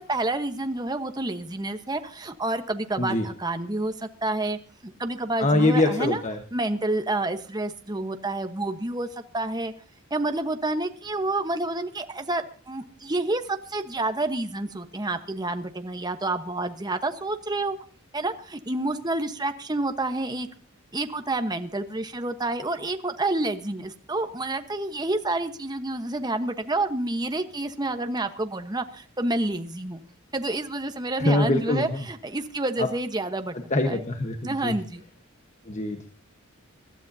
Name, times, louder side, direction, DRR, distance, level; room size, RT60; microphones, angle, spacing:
voice 1, 0.1-6.2 6.5-9.7 10.1-17.8 18.1-20.5 20.9-30.0 30.3-33.5 33.8-34.1 34.4-35.0, right 2 dB, 20° right, 7 dB, 1.1 m, -29 dB
voice 2, 5.4-6.4 31.2-32.0 32.8-32.9 33.7-34.8 35.7-36.0, left 2 dB, 35° left, 5 dB, 1.2 m, -23 dB
26.0 x 12.5 x 2.8 m, 0.41 s
head